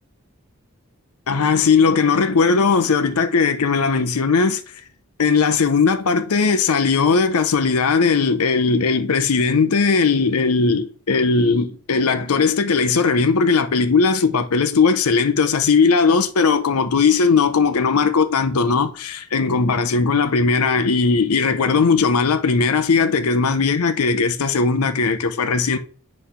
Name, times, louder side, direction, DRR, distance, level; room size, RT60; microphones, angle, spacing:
voice 1, 1.3-4.6 5.2-25.8, left 5 dB, 90° left, 0.7 m, -18 dB
7.9 x 3.3 x 5.6 m
head